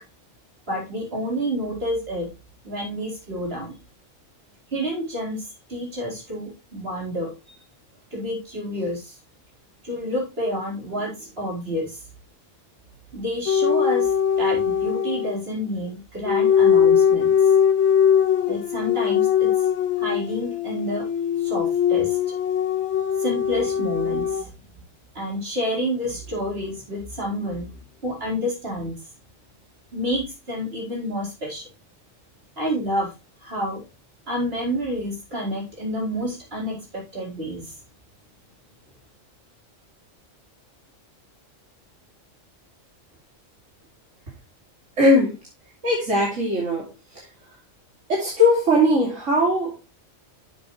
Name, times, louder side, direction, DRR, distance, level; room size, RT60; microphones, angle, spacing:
voice 1, 0.7-2.3 2.6-3.8 4.7-7.3 8.1-9.2 9.8-12.0 13.1-17.3 18.5-19.5 20.0-21.1 21.4-22.3 23.2-24.5 25.1-29.0 29.9-31.7 32.6-33.1 33.4-33.8 34.3-37.8, equal, 50° right, -3 dB, 4.5 m, -29 dB
sound 1, 13.5-15.4 16.3-24.4, left 8 dB, 65° left, 1.0 m, -21 dB
voice 2, 45.0-45.3 45.8-46.9 47.1-47.3 48.1-49.7, left 1 dB, 70° right, -4 dB, 3.1 m, -19 dB
10.5 x 7.2 x 3.1 m, 0.28 s
omnidirectional pair, 1.3 m